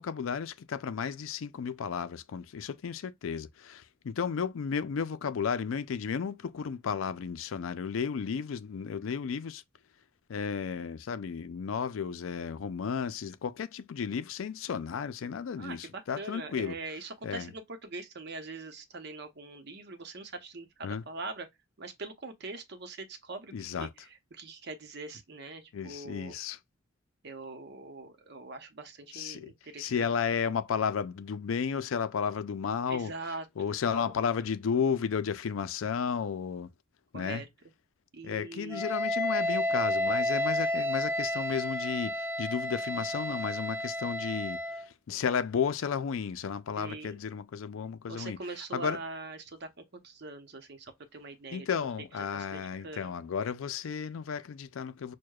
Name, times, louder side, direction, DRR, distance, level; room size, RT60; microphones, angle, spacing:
voice 1, 0.0-9.6 10.3-16.8 17.2-17.5 20.8-21.0 23.5-23.9 25.7-26.6 29.1-29.5 29.8-33.1 33.6-36.7 37.1-37.4 38.2-48.4 48.7-49.0 51.5-55.1, left 6 dB, 90° left, 0.4 m, -33 dB
voice 2, 15.6-21.5 21.8-23.5 23.8-26.4 27.2-30.1 32.9-33.5 33.9-34.1 37.1-37.5 38.1-38.8 40.6-40.7 46.8-47.4 48.1-51.7 52.2-53.1, right 3 dB, 55° right, 0.8 m, -42 dB
Wind instrument woodwind instrument, 38.7-44.9, left 1 dB, 15° right, 0.4 m, -31 dB
6.3 x 2.2 x 2.3 m
head